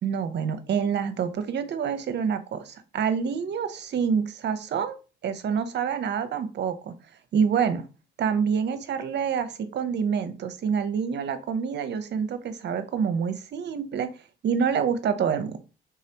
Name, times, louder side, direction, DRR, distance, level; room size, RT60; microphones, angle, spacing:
voice 1, 0.0-5.0 5.2-6.9 7.3-7.8 8.2-14.1 14.4-15.6, right 7 dB, 60° right, 11 dB, 0.8 m, -27 dB
4.8 x 3.7 x 2.9 m, 0.32 s
cardioid pair, 90°, 20 cm